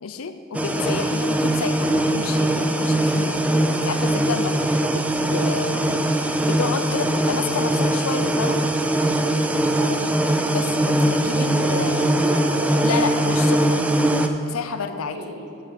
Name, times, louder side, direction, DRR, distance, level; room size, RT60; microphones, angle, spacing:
voice 1, 0.0-8.6 10.5-12.1 12.8-13.8 14.5-15.2, left 5 dB, 85° left, 9 dB, 0.6 m, -30 dB
sound 1, 0.5-14.3, right 1 dB, 5° right, 0.3 m, -21 dB
voice 2, 0.6-0.9 9.7-10.1 11.3-13.6 14.9-15.5, right 1 dB, 55° right, -1 dB, 1.5 m, -33 dB
9.5 x 5.8 x 5.2 m, 2.6 s
head